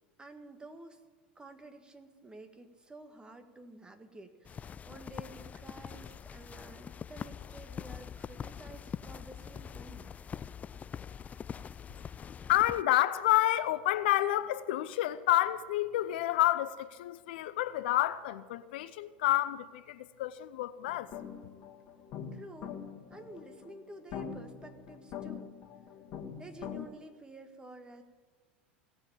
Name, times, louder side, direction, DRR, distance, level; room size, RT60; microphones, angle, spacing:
voice 1, 0.2-1.0 1.4-10.1 22.3-22.8 23.1-25.6 26.4-28.0, right 2 dB, 15° right, 1.8 m, -51 dB
sound 1, 4.4-12.8, left 7 dB, 25° left, 0.4 m, -44 dB
voice 2, 12.5-21.1, left 14 dB, 70° left, 0.6 m, -29 dB
sound 2, 20.8-26.9, left 7 dB, 50° left, 1.8 m, -44 dB
17.5 x 7.7 x 9.0 m
hypercardioid pair, 85°, 6 cm